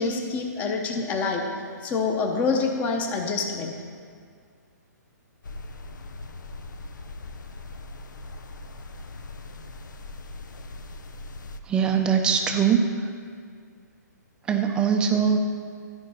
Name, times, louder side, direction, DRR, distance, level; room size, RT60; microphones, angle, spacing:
voice 1, 0.0-1.4 1.8-3.7, left 4 dB, 15° left, 3 dB, 0.8 m, -26 dB
sound 1, 5.4-11.6, left 2 dB, 85° left, 0.8 m, -40 dB
voice 2, 11.6-13.1 14.4-15.4, right 7 dB, 10° right, 4 dB, 0.5 m, -22 dB
12.5 x 5.2 x 6.2 m, 2.1 s
hypercardioid pair, 160°, 10 cm